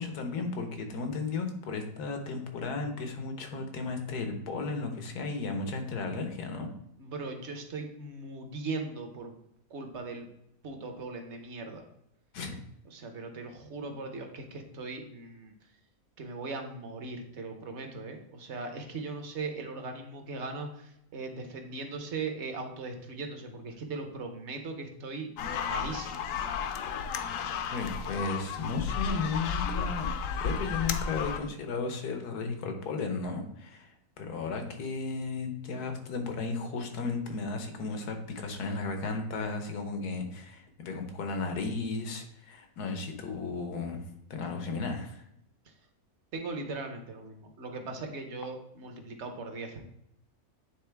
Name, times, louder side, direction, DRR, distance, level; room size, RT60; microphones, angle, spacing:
voice 1, 0.0-6.7 12.3-12.6 27.7-30.1 30.4-44.0 44.3-45.2, left 4 dB, 90° left, 5 dB, 1.5 m, -34 dB
voice 2, 7.0-9.3 9.7-10.3 10.6-11.8 12.9-15.5 16.2-26.2 46.3-49.8, right 3 dB, 50° right, 5 dB, 1.1 m, -39 dB
sound 1, 25.4-31.4, left 6 dB, 70° left, 0.9 m, -33 dB
9.1 x 3.8 x 3.4 m, 0.78 s
omnidirectional pair, 1.6 m